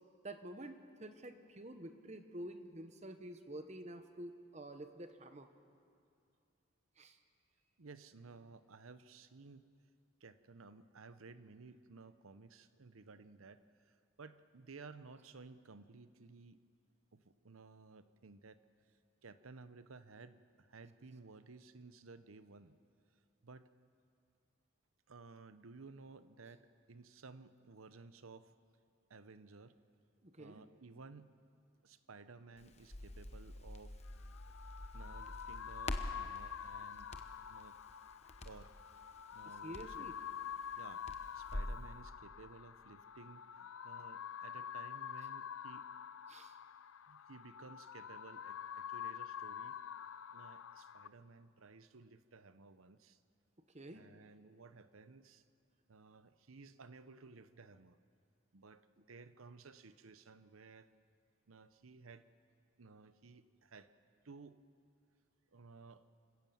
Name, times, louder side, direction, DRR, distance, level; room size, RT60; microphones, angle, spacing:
voice 1, 0.2-5.5 7.0-7.2 30.2-30.7 39.6-40.2 46.3-46.5 53.7-54.1, right 1 dB, 35° right, 8 dB, 1.1 m, -49 dB
voice 2, 7.8-9.7 10.2-16.6 17.1-18.6 19.2-22.8 23.4-23.7 25.1-28.5 29.1-29.8 30.4-31.3 31.8-34.0 34.9-37.1 37.5-37.8 38.4-38.7 39.3-40.1 40.8-41.1 41.3-43.5 43.8-45.9 47.1-49.8 50.3-53.2 53.9-55.4 55.9-58.0 58.5-60.9 61.5-62.3 62.8-63.9 64.2-64.6 65.5-66.1, right 4 dB, 85° right, 12 dB, 0.8 m, -56 dB
Crackle, 32.6-41.8, left 1 dB, 30° left, 0.9 m, -47 dB
sound 1, 34.1-51.1, left 8 dB, 85° left, 0.5 m, -47 dB
26.0 x 16.5 x 7.1 m, 2.4 s
head